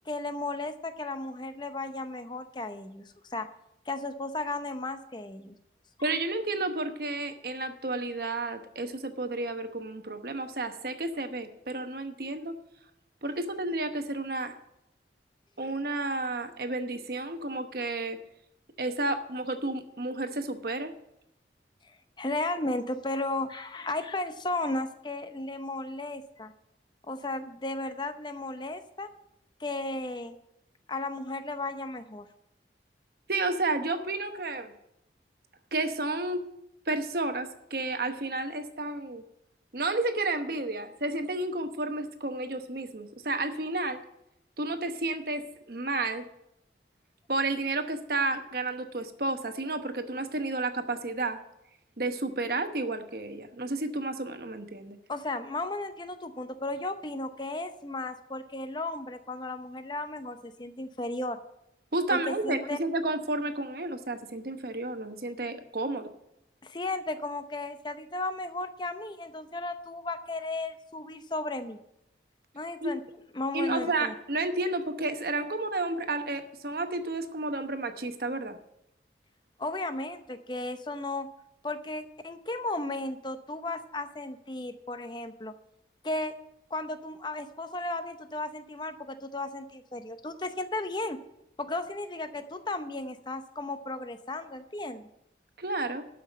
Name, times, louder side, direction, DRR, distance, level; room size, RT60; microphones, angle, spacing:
voice 1, 0.1-3.5 3.9-5.5 21.8-26.5 27.1-29.1 29.6-30.4 30.9-32.3 55.1-61.4 62.1-62.8 66.6-71.8 72.5-73.0 73.3-74.1 79.6-81.3 81.6-85.5 86.0-86.3 86.7-91.2 91.6-95.1, left 2 dB, 25° left, 9 dB, 0.7 m, -34 dB
voice 2, 6.0-12.5 13.2-14.6 15.6-18.2 18.8-20.9 33.3-34.7 35.7-36.4 36.9-39.2 39.7-44.0 44.6-46.3 47.3-51.4 52.0-55.0 61.9-66.1 72.8-72.9 73.5-78.6 95.6-96.0, right 2 dB, 55° right, 8 dB, 1.0 m, -31 dB
12.5 x 5.7 x 7.6 m, 0.82 s
head